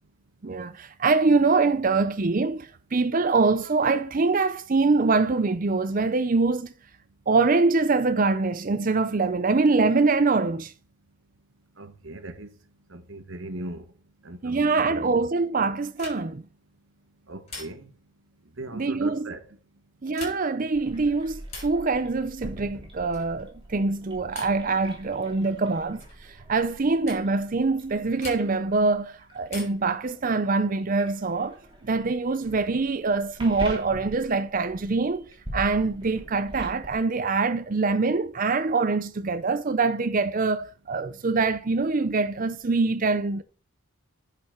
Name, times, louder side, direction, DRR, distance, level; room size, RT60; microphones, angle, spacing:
voice 1, 0.4-6.7 7.3-10.7 14.4-16.4 18.7-19.3 20.0-31.6 31.8-43.4, right 3 dB, 40° right, 0.5 m, -24 dB
voice 2, 11.8-12.5 12.9-13.8 14.2-15.2 17.3-17.9 18.6-19.4, right 2 dB, 55° right, 1.2 m, -38 dB
sound 1, 15.9-16.5 17.5-18.1 20.0-20.7 21.5-21.9 23.1-23.4 24.3-24.7 26.0-26.2 27.1-27.3 28.2-28.7 29.5-30.0 31.4-32.1, left 2 dB, 30° left, 6.2 m, -43 dB
sound 2, 20.7-37.1, right 1 dB, 25° right, 3.2 m, -43 dB
10.0 x 5.8 x 5.7 m
head